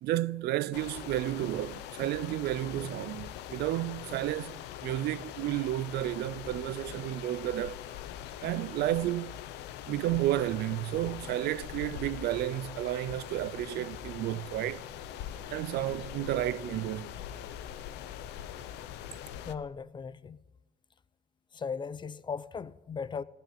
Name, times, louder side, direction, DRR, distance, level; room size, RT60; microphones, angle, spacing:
voice 1, 0.0-7.8 8.4-9.4 9.9-14.8 15.5-17.1, right 14 dB, 75° right, 0.4 m, -32 dB
sound 1, 0.7-19.5, left 11 dB, 85° left, 0.7 m, -42 dB
sound 2, 12.8-19.5, right 3 dB, 40° right, 2.4 m, -57 dB
voice 2, 19.4-20.4 21.5-23.2, left 6 dB, 25° left, 0.5 m, -37 dB
15.5 x 6.3 x 9.9 m
cardioid pair, 110°, 17 cm